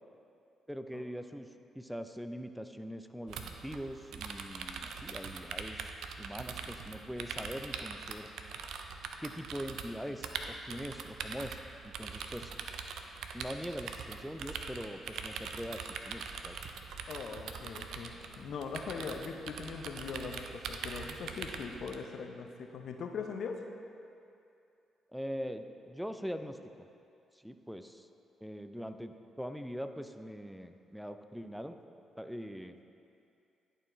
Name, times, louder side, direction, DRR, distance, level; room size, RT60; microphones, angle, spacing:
voice 1, 0.7-1.5 1.7-5.9 6.2-8.3 9.2-11.6 11.8-12.5 13.3-16.6 25.1-26.6 27.3-28.1 28.4-31.8 32.2-32.8, equal, ahead, 8 dB, 0.4 m, -42 dB
sound 1, 3.3-22.0, right 5 dB, 70° right, 0.4 m, -43 dB
voice 2, 17.1-23.6, left 5 dB, 60° left, 4 dB, 0.6 m, -41 dB
11.0 x 4.4 x 3.1 m, 2.6 s
hypercardioid pair, 40°, 0 cm